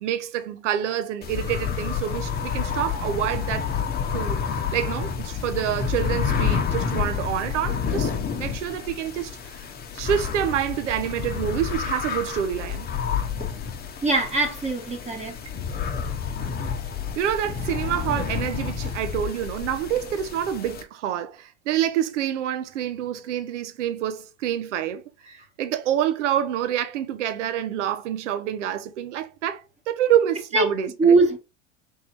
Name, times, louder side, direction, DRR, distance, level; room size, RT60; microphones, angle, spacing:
voice 1, 0.0-3.7 4.1-9.6 9.9-12.9 17.2-25.0 25.6-31.2, right 10 dB, 85° right, 0.7 m, -27 dB
sound 1, 1.2-20.8, left 7 dB, 25° left, 0.8 m, -29 dB
voice 2, 14.0-15.4 25.3-25.4 30.5-30.7 31.0-31.4, right 3 dB, 20° right, 1.3 m, -21 dB
3.6 x 2.7 x 4.5 m
hypercardioid pair, 110°, 35 cm